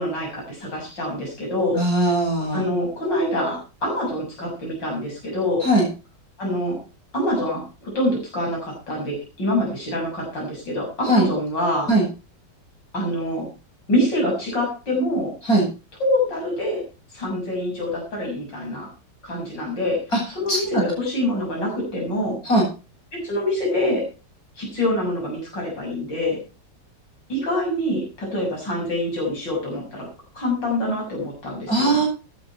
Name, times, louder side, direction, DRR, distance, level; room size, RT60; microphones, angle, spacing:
voice 1, 0.0-1.8 2.5-5.6 6.4-6.8 7.1-11.9 12.9-13.5 13.9-15.3 16.0-16.8 17.1-18.9 19.2-20.0 20.3-22.4 23.1-24.0 24.6-26.4 27.3-30.1 30.3-32.0, left 1 dB, 80° left, -2 dB, 7.4 m, -25 dB
voice 2, 1.8-2.7 5.6-5.8 11.1-11.2 11.9-12.0 15.4-15.6 20.5-20.8 22.5-22.6 31.7-32.0, right 1 dB, 50° left, -2 dB, 8.4 m, -19 dB
16.0 x 11.5 x 4.5 m, 0.33 s
omnidirectional pair, 1.9 m